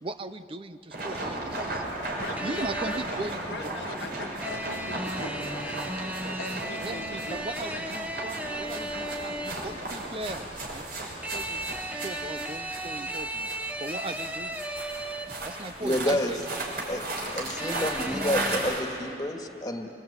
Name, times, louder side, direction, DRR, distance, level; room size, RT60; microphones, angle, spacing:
voice 1, 0.0-2.1 2.4-3.9 6.6-10.8 11.3-13.5 13.8-14.6 15.4-16.6 17.3-17.6, right 2 dB, 30° right, 11 dB, 0.6 m, -38 dB
sound 1, 0.9-18.8, right 2 dB, 55° right, 5.6 m, -35 dB
voice 2, 2.2-5.8 6.4-7.9, left 3 dB, 75° left, 8 dB, 1.1 m, -42 dB
sound 2, 2.4-3.3 4.4-9.8 11.2-15.6 17.6-18.6, right 1 dB, 10° right, 1.3 m, -35 dB
voice 3, 15.8-16.3 16.9-17.0 17.3-19.9, left 1 dB, 20° left, 4 dB, 1.9 m, -29 dB
26.5 x 25.0 x 8.8 m, 2.9 s
head